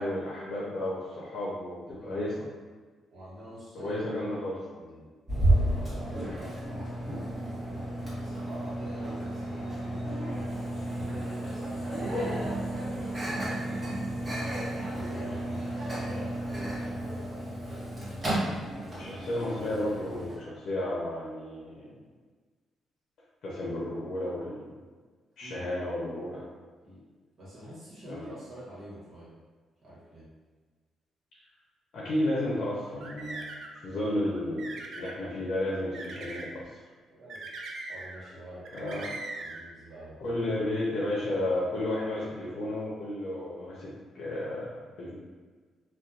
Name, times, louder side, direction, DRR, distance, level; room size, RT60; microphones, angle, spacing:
voice 1, 0.0-2.3 3.7-4.6 19.0-21.9 23.4-24.8 25.4-26.5 28.1-28.3 31.3-31.4 31.9-36.6 38.7-39.1 40.2-45.1, left 1 dB, 65° left, -6 dB, 0.6 m, -32 dB
voice 2, 3.1-4.0 4.8-10.2 10.6-12.3 14.9-16.7 25.4-25.6 26.8-27.0 27.4-29.4 29.8-30.3 37.1-37.6 37.9-39.0 39.3-40.4, right 1 dB, 45° right, -9 dB, 1.2 m, -47 dB
Microwave oven, 5.3-20.4, right 1 dB, 25° right, 1.0 m, -32 dB
sound 1, 32.8-33.8 34.3-35.2 35.9-36.5 37.3-38.3 38.6-39.6, right 2 dB, 65° right, 0.3 m, -40 dB
2.7 x 2.3 x 2.4 m, 1.5 s
cardioid pair, 90°, 0 cm